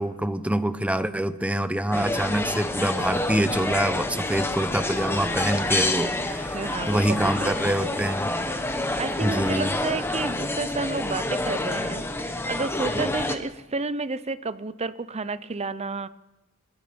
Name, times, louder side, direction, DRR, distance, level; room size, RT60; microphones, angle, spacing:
voice 1, 0.0-8.3 9.2-9.7 12.9-13.0, right 1 dB, 5° right, 11 dB, 0.9 m, -26 dB
sound 1, 1.9-13.3, left 2 dB, 10° left, 1.3 m, -28 dB
voice 2, 6.5-7.8 8.7-16.1, right 3 dB, 30° right, 15 dB, 0.7 m, -31 dB
23.5 x 21.5 x 5.3 m, 1.0 s
head